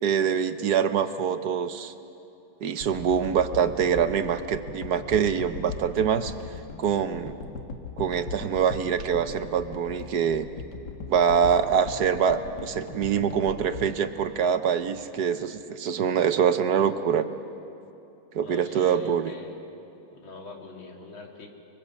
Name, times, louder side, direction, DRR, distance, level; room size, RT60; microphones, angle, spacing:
voice 1, 0.0-1.9 2.6-6.3 6.8-7.3 8.0-10.4 11.1-17.3 18.3-19.3, right 7 dB, 60° right, 10 dB, 1.3 m, -24 dB
sound 1, 2.8-15.0 15.6-15.7, left 4 dB, 60° left, 1.9 m, -40 dB
voice 2, 18.4-19.6 20.1-21.5, left 2 dB, 90° left, 0 dB, 3.5 m, -43 dB
25.0 x 22.5 x 8.2 m, 2.7 s
omnidirectional pair, 2.1 m